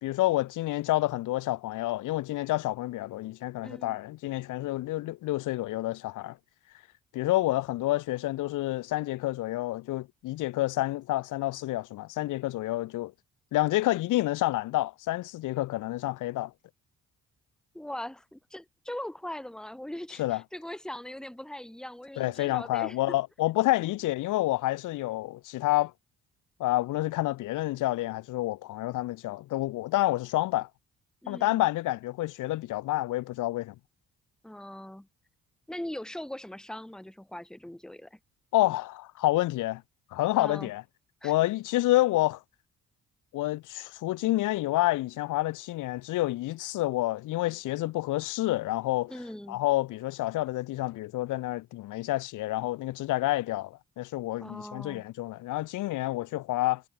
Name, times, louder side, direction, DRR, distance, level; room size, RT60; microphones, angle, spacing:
voice 1, 0.0-6.4 7.1-13.1 13.5-16.5 20.2-20.4 22.2-25.9 26.6-30.7 31.3-33.7 38.5-39.8 40.1-40.8 41.2-42.4 43.3-49.1 49.5-56.8, left 17 dB, 90° left, 1.5 m, -28 dB
voice 2, 3.6-4.0 17.7-23.2 31.2-31.6 34.4-35.1 35.7-38.2 40.4-40.7 41.2-41.3 49.1-49.6 54.4-55.0, left 1 dB, ahead, 1.4 m, -40 dB
cardioid pair, 90°, 30 cm